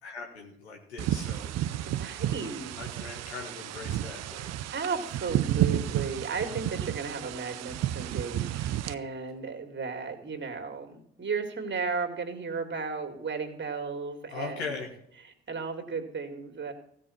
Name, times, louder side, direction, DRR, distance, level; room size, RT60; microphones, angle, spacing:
voice 1, 0.0-1.8 2.8-4.5 14.3-14.9, left 4 dB, 90° left, 1 dB, 1.6 m, -40 dB
sound 1, 1.0-8.9, right 12 dB, 50° right, 0.7 m, -31 dB
voice 2, 1.8-2.8 4.7-14.8 15.2-16.7, right 5 dB, 35° right, 5 dB, 2.4 m, -35 dB
15.5 x 5.4 x 7.1 m, 0.71 s
hypercardioid pair, 50°, 32 cm